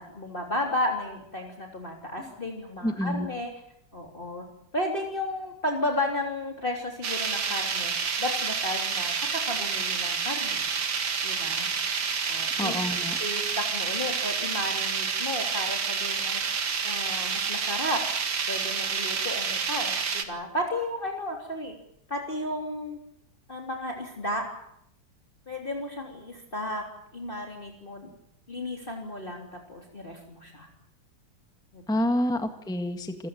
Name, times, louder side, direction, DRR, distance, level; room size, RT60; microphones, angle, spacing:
voice 1, 0.0-3.5 3.9-4.5 4.7-7.9 8.2-10.7 11.2-11.7 12.3-12.8 13.2-16.4 16.8-18.1 18.5-21.7 22.1-23.0 23.5-24.5 25.5-26.9 27.1-28.1 28.5-30.7 31.7-32.0, left 1 dB, 25° left, 2 dB, 3.5 m, -33 dB
voice 2, 2.8-3.3 12.6-13.2 31.9-33.3, left 1 dB, ahead, 7 dB, 1.6 m, -28 dB
sound 1, 7.0-20.2, right 6 dB, 80° right, 2.8 m, -29 dB
27.5 x 16.0 x 9.2 m, 0.75 s
omnidirectional pair, 2.1 m